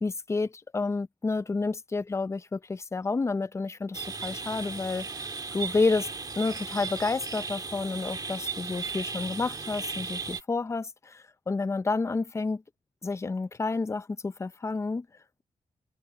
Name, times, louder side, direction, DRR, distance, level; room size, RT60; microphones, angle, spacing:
voice 1, 0.0-5.1 5.5-6.1 6.4-12.6 13.0-15.1, left 3 dB, 20° left, 0.5 m, -30 dB
sound 1, 3.9-10.4, right 4 dB, 30° right, 1.9 m, -36 dB
wide cardioid pair, 155°, 13 cm